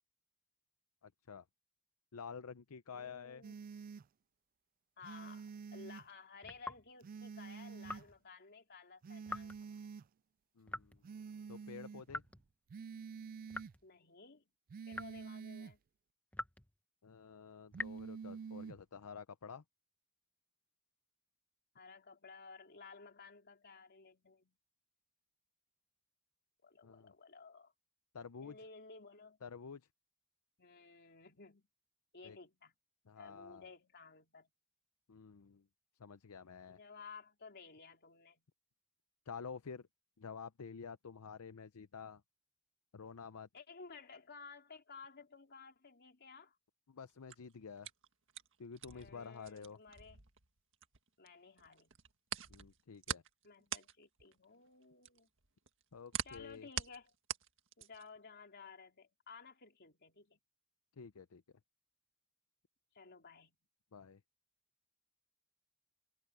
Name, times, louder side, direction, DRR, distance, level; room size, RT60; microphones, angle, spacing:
voice 1, 1.0-1.4 2.1-3.4 10.6-11.0 11.5-12.2 17.0-19.6 26.8-27.1 28.1-28.6 29.4-29.9 32.2-32.4 33.1-33.7 35.1-35.7 36.0-36.8 39.3-39.9 40.2-42.2 42.9-43.5 46.9-47.9 48.6-49.8 52.5-53.2 55.9-56.7 61.0-61.4 63.9-64.2, left 6 dB, 85° left, 0.6 m, -50 dB
voice 2, 2.9-3.5 5.0-9.9 13.8-14.5 14.9-15.8 21.7-24.6 26.6-27.7 28.4-29.4 30.6-31.7 32.1-32.7 33.2-34.5 36.7-38.4 43.5-46.6 48.9-50.2 51.2-51.9 53.4-55.3 56.2-57.1 57.8-60.4 62.9-63.6, left 4 dB, 50° left, 3.7 m, -55 dB
sound 1, 3.4-4.0 5.0-6.0 7.0-8.1 9.0-10.1 11.0-12.1 12.7-13.7 14.7-15.7 17.7-18.8, right 6 dB, 40° right, 0.3 m, -48 dB
sound 2, 6.4-6.9 7.8-8.2 9.3-9.6 10.7-11.1 12.1-12.5 13.5-13.9 14.9-15.3 16.3-16.7 17.7-18.1, left 1 dB, 5° left, 1.1 m, -45 dB
sound 3, 47.1-51.3 51.6-58.2, right 9 dB, 60° right, 1.7 m, -44 dB
head